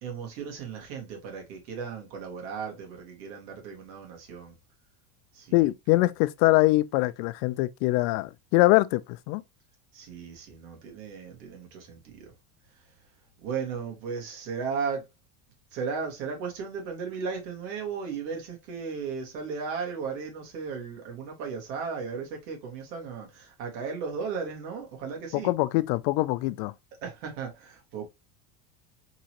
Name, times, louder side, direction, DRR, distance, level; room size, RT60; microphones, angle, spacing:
voice 1, 0.0-4.5 5.3-5.6 5.9-6.0 9.9-12.3 13.4-15.0 15.7-25.5 27.0-28.1, right 5 dB, 80° right, 1.9 m, -35 dB
voice 2, 5.5-9.4 25.3-26.7, left 19 dB, 80° left, 0.5 m, -23 dB
3.8 x 2.9 x 2.9 m
cardioid pair, 155°, 48 cm